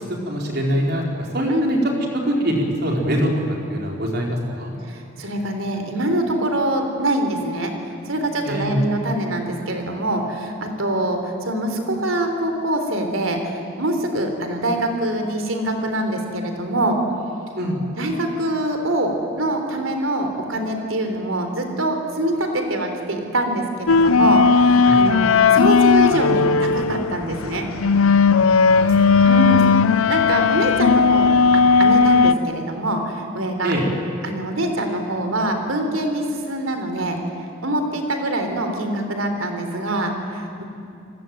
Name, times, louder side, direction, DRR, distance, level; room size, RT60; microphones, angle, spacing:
voice 1, 0.3-1.8 2.2-4.7 8.4-8.8 17.5-17.8 24.8-25.0 28.7-29.3 33.6-33.8, equal, 50° right, 0 dB, 4.6 m, -24 dB
voice 2, 4.9-7.7 8.1-17.0 18.0-27.7 29.2-29.8 30.0-33.7 34.2-37.2 37.6-40.6, right 1 dB, 75° right, 5 dB, 3.7 m, -24 dB
sound 1, 23.9-32.3, left 5 dB, 80° left, 0.6 m, -16 dB
29.0 x 20.0 x 9.3 m, 2.6 s
head